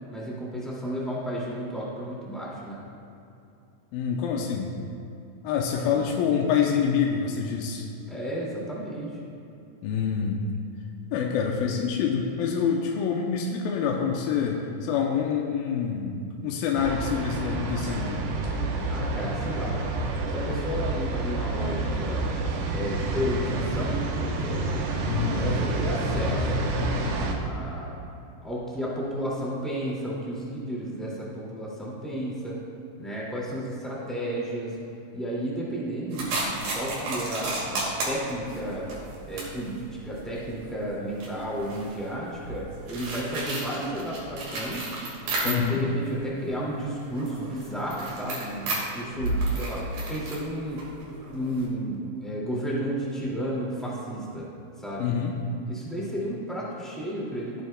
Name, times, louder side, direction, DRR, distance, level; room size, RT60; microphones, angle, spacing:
voice 1, 0.1-2.8 5.7-6.0 8.1-9.2 18.9-19.8 20.3-22.2 22.7-24.8 25.3-28.0 28.4-32.6 33.0-34.8 35.1-38.9 39.3-44.9 45.4-50.9 51.3-54.4 54.8-55.1 55.7-57.6, equal, ahead, -7 dB, 0.8 m, -32 dB
voice 2, 3.9-4.7 5.4-7.9 9.8-10.4 11.1-18.3 25.0-25.5 45.5-45.8 55.0-55.4, left 7 dB, 90° left, 0 dB, 2.4 m, -26 dB
sound 1, 16.8-27.3, right 2 dB, 80° right, 2.8 m, -28 dB
sound 2, 36.1-45.9 46.3-51.7, right 2 dB, 65° right, 3.7 m, -33 dB
15.5 x 9.3 x 2.2 m, 2.8 s
omnidirectional pair, 4.2 m